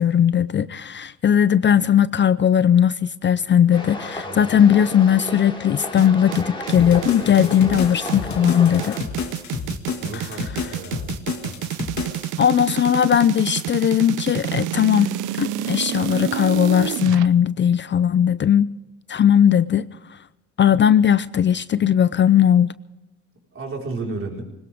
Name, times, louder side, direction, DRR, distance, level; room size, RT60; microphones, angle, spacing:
voice 1, 0.0-9.0 10.1-10.3 12.4-18.7 19.1-19.8 20.6-22.7, left 9 dB, 40° left, 0.5 m, -18 dB
sound 1, 3.7-9.0, left 2 dB, 15° left, 3.0 m, -33 dB
voice 2, 4.2-4.6 10.0-11.1 23.5-24.4, right 3 dB, 45° right, 4.5 m, -33 dB
sound 2, 6.0-17.3, right 14 dB, 85° right, 0.6 m, -29 dB
sound 3, 6.7-12.3, left 5 dB, 65° left, 2.3 m, -30 dB
21.0 x 19.0 x 3.6 m
cardioid pair, 90°, 30 cm